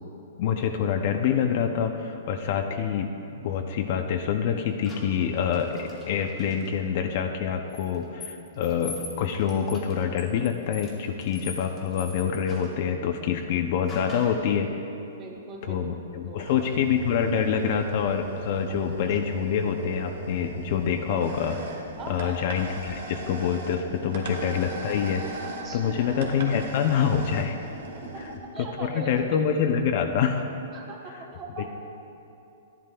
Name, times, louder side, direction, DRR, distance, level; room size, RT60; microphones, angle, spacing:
voice 1, 0.4-14.7 15.7-21.6 22.1-25.5 25.7-27.6 28.8-30.4, left 7 dB, 35° left, 6 dB, 0.4 m, -26 dB
sound 1, 4.8-6.7 7.7-12.8 13.9-14.5, left 3 dB, 15° left, 0.9 m, -44 dB
voice 2, 15.1-15.8 16.3-16.4 22.0-22.4 25.6-26.0 28.1-28.2 28.5-29.1 30.7-31.7, right 4 dB, 15° right, 1 dB, 0.8 m, -40 dB
sound 2, 16.4-28.4, right 3 dB, 55° right, 1.4 m, -38 dB
13.5 x 11.0 x 2.3 m, 2.8 s
hypercardioid pair, 175°, 0 cm